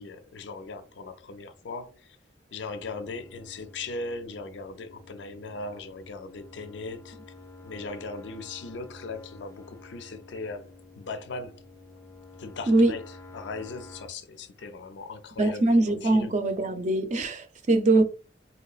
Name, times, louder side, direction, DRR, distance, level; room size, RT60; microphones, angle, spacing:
voice 1, 0.0-2.2 2.5-7.2 7.6-11.6 12.4-13.0 13.3-16.3 17.9-18.0, left 3 dB, 75° left, 0.5 m, -39 dB
sound 1, 2.8-14.1, left 3 dB, 15° left, 0.4 m, -49 dB
voice 2, 15.4-18.0, right 2 dB, 45° right, 0.5 m, -22 dB
4.0 x 2.8 x 2.4 m
head